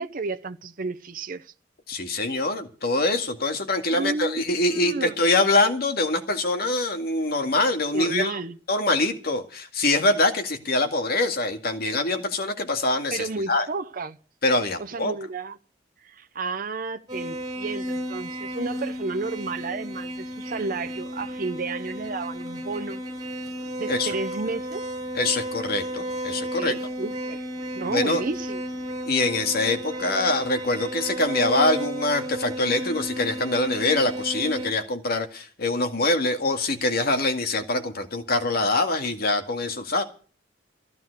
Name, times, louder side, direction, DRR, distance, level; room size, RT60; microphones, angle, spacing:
voice 1, 0.0-1.5 3.9-5.2 7.9-8.6 13.1-14.2 14.8-15.6 16.0-23.0 23.8-24.8 26.6-27.4 27.7-28.6, right 3 dB, 50° right, 0.8 m, -32 dB
voice 2, 1.9-8.4 8.7-13.7 14.4-15.1 23.9-24.1 25.2-26.7 27.9-28.2 29.1-40.0, left 2 dB, 55° left, 2.1 m, -24 dB
sound 1, 17.1-34.7, right 1 dB, 20° right, 6.5 m, -33 dB
15.0 x 11.0 x 6.6 m
head